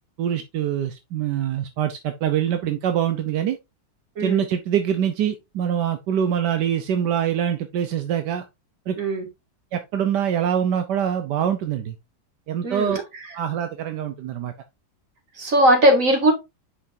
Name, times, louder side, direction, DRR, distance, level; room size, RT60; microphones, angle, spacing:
voice 1, 0.2-3.6 4.2-8.4 8.9-9.0 9.7-12.0 12.5-14.5, right 9 dB, 85° right, 1.4 m, -24 dB
voice 2, 12.6-13.0 15.4-16.3, right 1 dB, 50° right, 2.5 m, -18 dB
8.1 x 5.7 x 2.6 m
omnidirectional pair, 1.8 m